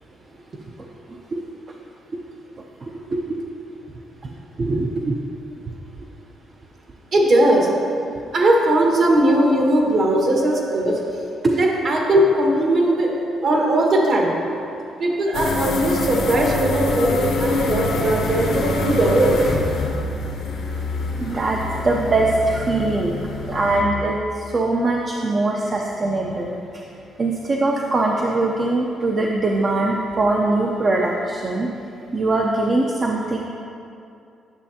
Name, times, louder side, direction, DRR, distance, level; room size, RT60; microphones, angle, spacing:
voice 1, 1.1-1.4 3.1-3.3 4.6-5.2 21.2-21.6 21.8-23.1 23.5-26.6 27.2-31.7 32.1-33.4, right 2 dB, 40° right, -1 dB, 0.6 m, -22 dB
voice 2, 7.1-7.7 8.3-11.0 11.5-13.1 13.4-14.3 15.0-19.4, right 1 dB, 60° right, -1 dB, 1.5 m, -18 dB
sound 1, 15.3-23.8, left 2 dB, 80° left, 1.0 m, -25 dB
9.6 x 6.7 x 2.8 m, 2.6 s
cardioid pair, 90°, 0 cm